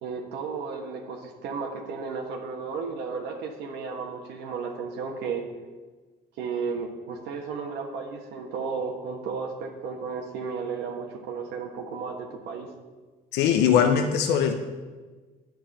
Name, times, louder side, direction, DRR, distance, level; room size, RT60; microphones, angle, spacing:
voice 1, 0.0-5.4 6.4-12.7, right 5 dB, 85° right, 1 dB, 1.4 m, -33 dB
voice 2, 13.3-14.5, left 8 dB, 85° left, 5 dB, 0.9 m, -21 dB
9.7 x 6.1 x 8.6 m, 1.3 s
cardioid pair, 110°, 17 cm